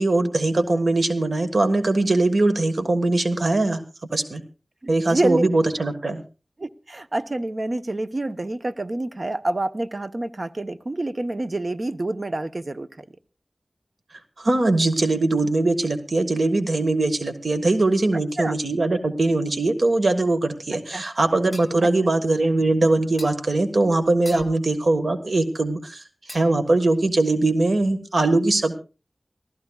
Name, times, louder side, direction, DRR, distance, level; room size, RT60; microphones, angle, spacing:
voice 1, 0.0-3.8 4.1-4.4 4.9-6.2 14.4-26.0 26.3-28.7, right 2 dB, 75° right, 8 dB, 1.4 m, -21 dB
voice 2, 4.8-5.4 6.6-13.0 18.4-18.5 20.9-21.0 21.8-21.9, right 2 dB, 50° right, 10 dB, 0.8 m, -27 dB
sound 1, 21.5-21.8 23.2-23.4 24.3-24.6 26.3-26.7, left 1 dB, 20° left, 2.7 m, -39 dB
26.0 x 15.0 x 2.3 m, 0.33 s
wide cardioid pair, 60°, 0 cm